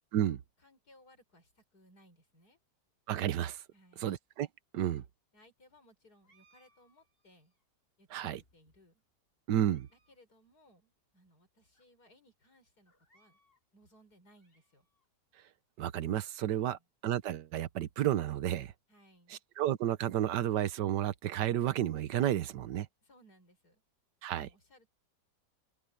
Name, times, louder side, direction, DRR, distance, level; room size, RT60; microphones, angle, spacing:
voice 1, 0.6-2.6 3.7-4.1 5.3-7.5 8.0-9.0 9.9-13.4 13.7-14.9 16.6-16.9 18.9-19.4 23.0-23.8 24.4-24.9, equal, 60° left, 6.3 m, -64 dB
voice 2, 3.1-3.6 4.0-4.5 4.7-5.0 8.1-8.4 9.5-9.9 15.8-18.7 19.6-22.9 24.2-24.5, right 11 dB, 75° right, 1.5 m, -31 dB
sound 1, 6.2-7.6 8.3-9.0 9.5-10.2 10.5-10.6 11.3-11.4 11.7-11.9 12.8-13.7 14.1-15.1, right 2 dB, 30° left, 7.5 m, -71 dB
omnidirectional pair, 1.9 m